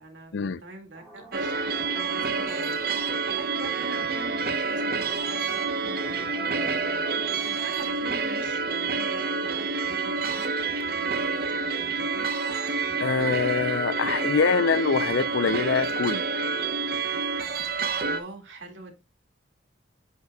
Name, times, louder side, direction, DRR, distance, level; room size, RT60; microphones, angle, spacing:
voice 1, 0.0-10.5 10.8-12.3 18.0-18.9, right 2 dB, 75° right, 2.2 m, -44 dB
sound 1, 0.9-7.8, equal, ahead, 4.0 m, -47 dB
sound 2, 1.3-18.2, right 4 dB, 50° right, 0.9 m, -28 dB
voice 2, 13.0-16.3, left 5 dB, 75° left, 0.5 m, -24 dB
9.8 x 6.8 x 2.3 m
head